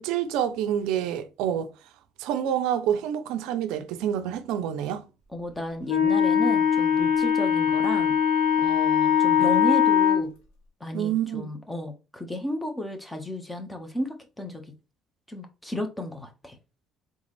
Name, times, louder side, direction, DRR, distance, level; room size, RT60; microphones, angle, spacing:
voice 1, 0.0-1.7 2.2-5.0 10.9-11.5, right 10 dB, 80° right, 0.5 m, -27 dB
voice 2, 5.3-8.1 8.6-10.3 10.8-14.6 15.3-16.6, left 1 dB, 15° left, 1.3 m, -33 dB
Wind instrument woodwind instrument, 5.9-10.2, left 8 dB, 80° left, 1.4 m, -21 dB
3.8 x 3.7 x 3.3 m
supercardioid pair, 65°, 0 cm